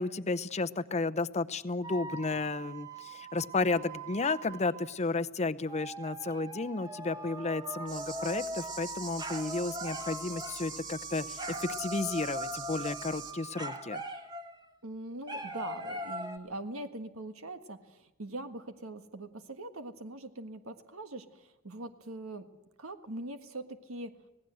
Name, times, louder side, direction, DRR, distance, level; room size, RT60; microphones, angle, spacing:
voice 1, 0.0-14.0, left 3 dB, 30° left, 12 dB, 0.7 m, -33 dB
sound 1, 1.8-5.0 5.7-14.7 15.3-16.4, right 1 dB, 20° right, 1.5 m, -41 dB
sound 2, 7.9-13.3, right 6 dB, 40° right, 2.9 m, -44 dB
voice 2, 14.8-22.5 22.8-24.1, right 2 dB, 85° right, 8 dB, 1.6 m, -42 dB
26.0 x 18.0 x 7.8 m, 0.99 s
head